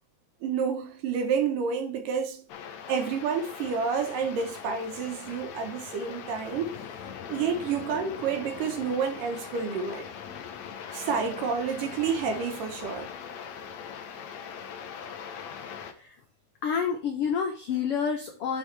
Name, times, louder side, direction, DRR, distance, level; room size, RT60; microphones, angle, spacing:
voice 1, 0.4-2.4 2.9-6.7 7.3-10.1 10.9-13.1, right 6 dB, 75° right, 2.7 m, -29 dB
sound 1, 2.5-15.9, left 7 dB, 70° left, 1.8 m, -41 dB
voice 2, 16.6-18.6, left 7 dB, 85° left, 1.3 m, -28 dB
8.1 x 5.4 x 3.3 m
omnidirectional pair, 4.0 m